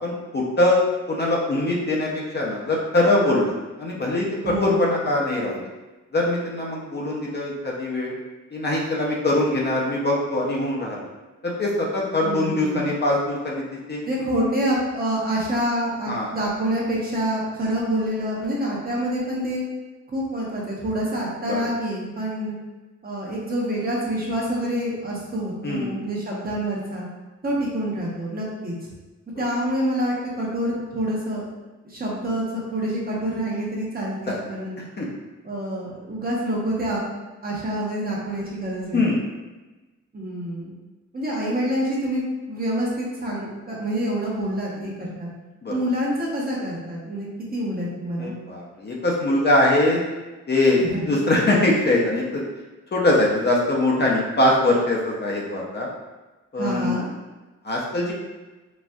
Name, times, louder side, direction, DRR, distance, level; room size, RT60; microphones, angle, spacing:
voice 1, 0.0-5.6 6.1-8.1 8.5-11.1 11.4-13.6 13.9-14.0 16.1-16.3 21.5-21.6 25.6-26.0 29.3-29.4 34.3-34.4 35.0-35.1 38.9-39.2 45.6-45.7 48.2-50.0 50.5-52.4 52.9-55.9 56.5-56.9 57.6-58.1, left 1 dB, 35° left, -3 dB, 0.6 m, -22 dB
voice 2, 4.4-4.9 12.2-13.0 14.0-19.6 20.1-22.5 23.0-27.1 27.4-28.7 29.4-31.5 31.8-34.8 35.4-37.0 37.4-39.1 40.1-40.7 41.1-45.3 45.7-47.3 47.5-48.3 50.8-51.1 56.6-57.1, right 1 dB, 30° right, -4 dB, 0.8 m, -27 dB
4.1 x 2.3 x 2.3 m, 1.2 s
wide cardioid pair, 100°, 30 cm